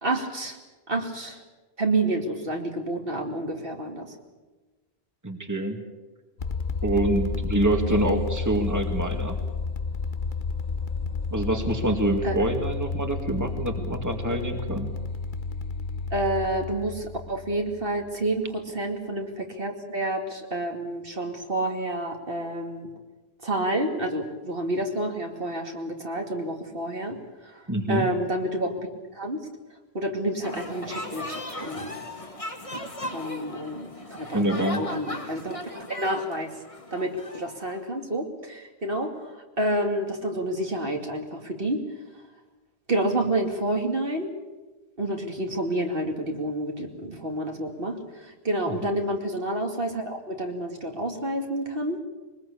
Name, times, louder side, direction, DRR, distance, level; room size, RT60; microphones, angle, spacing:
voice 1, 0.0-0.6 0.9-1.4 1.8-4.1 7.9-8.0 12.2-12.3 16.1-22.9 23.4-27.2 27.4-27.6 27.9-28.9 29.1-29.5 29.9-31.9 33.1-36.5 36.9-41.8 42.9-44.3 45.0-52.0, right 1 dB, 60° right, 2 dB, 2.7 m, -29 dB
voice 2, 5.2-5.8 6.8-9.4 11.3-14.9 27.7-28.1 34.3-34.9 48.7-48.8, right 1 dB, 15° right, 4 dB, 2.1 m, -26 dB
sound 1, 6.4-18.1, left 4 dB, 50° left, 1.2 m, -31 dB
sound 2, 30.4-37.8, left 1 dB, 30° left, 2.1 m, -37 dB
22.5 x 20.5 x 8.5 m, 1.2 s
omnidirectional pair, 1.1 m